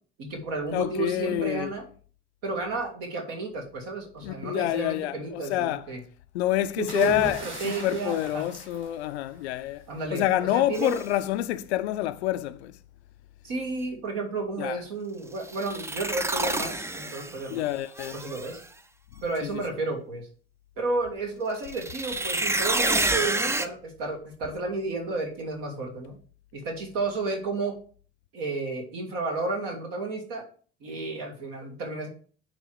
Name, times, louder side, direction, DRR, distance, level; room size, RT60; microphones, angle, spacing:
voice 1, 0.2-1.9 2.4-6.0 6.8-8.4 9.9-10.9 13.4-17.6 18.1-18.6 19.2-20.3 20.8-26.2 26.5-27.8 28.3-30.5 30.8-32.1, right 3 dB, 60° right, 2.0 m, -32 dB
voice 2, 0.7-1.7 4.2-5.9 6.3-12.8 14.6-14.8 17.5-18.2 19.4-19.6, left 14 dB, 70° left, 0.5 m, -28 dB
sound 1, 6.9-9.6 10.9-11.2, right 2 dB, 35° right, 3.3 m, -39 dB
sound 2, 10.7-11.0 15.4-17.5 18.0-18.6 21.6-23.7, right 2 dB, 10° right, 0.5 m, -28 dB
9.0 x 3.2 x 4.7 m
figure-of-eight pair, 55°, 34 cm